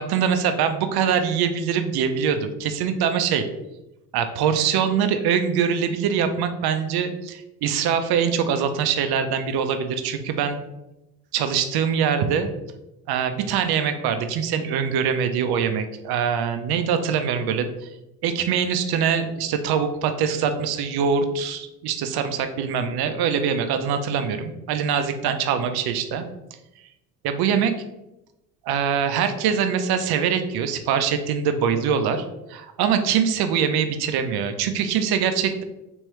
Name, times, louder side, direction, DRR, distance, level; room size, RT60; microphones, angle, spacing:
voice 1, 0.0-3.5 4.1-10.6 11.3-12.5 13.1-17.7 18.2-26.3 27.2-27.7 28.6-35.6, right 7 dB, 55° right, 8 dB, 0.6 m, -23 dB
3.5 x 3.0 x 3.1 m, 0.94 s
hypercardioid pair, 65°, 46 cm